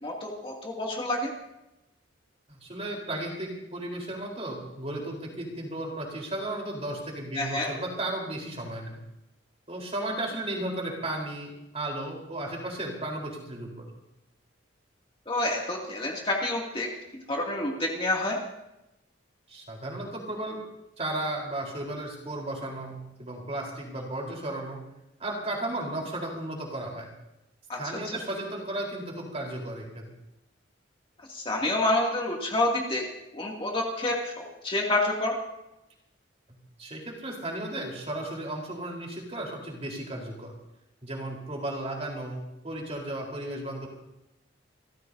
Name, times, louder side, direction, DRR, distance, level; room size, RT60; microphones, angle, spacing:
voice 1, 0.0-1.3 7.4-7.7 15.3-16.9 17.3-18.4 27.7-27.8 31.2-33.0 33.3-35.3, left 2 dB, 25° left, -2 dB, 2.5 m, -28 dB
voice 2, 2.5-9.0 9.7-13.9 19.5-20.6 21.0-24.8 25.2-27.1 27.8-30.0 36.8-40.5 41.0-43.9, right 1 dB, 30° right, -1 dB, 4.0 m, -34 dB
29.0 x 15.0 x 2.8 m, 0.92 s
head